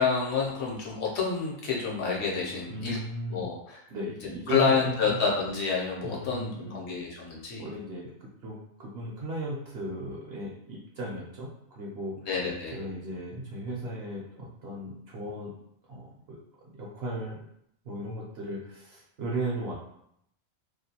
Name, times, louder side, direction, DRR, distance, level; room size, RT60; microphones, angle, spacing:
voice 1, 0.0-3.0 3.3-3.8 4.2-7.7 12.3-12.8, left 5 dB, 65° left, -3 dB, 0.8 m, -28 dB
voice 2, 2.7-3.5 3.9-5.2 6.0-6.8 7.6-8.1 8.4-12.2 12.7-15.5 15.9-16.4 16.7-17.5 17.8-19.7, right 1 dB, 65° right, -4 dB, 0.7 m, -36 dB
2.4 x 2.2 x 2.7 m, 0.74 s
omnidirectional pair, 1.4 m